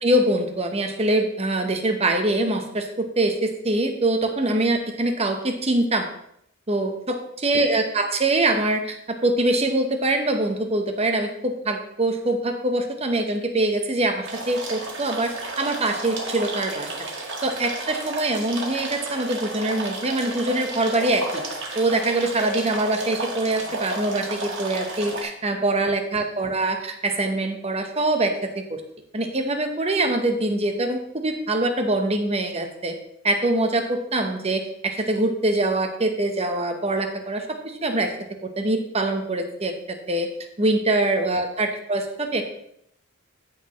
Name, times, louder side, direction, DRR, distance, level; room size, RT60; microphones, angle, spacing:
voice 1, 0.0-6.1 6.7-16.9 17.4-21.4 21.7-28.8 29.1-32.9 33.2-38.1 38.4-40.3 40.6-42.4, right 2 dB, 30° right, 5 dB, 1.0 m, -24 dB
sound 1, 14.2-25.2, right 2 dB, 60° right, 1.8 m, -32 dB
14.0 x 6.4 x 3.1 m, 0.74 s
head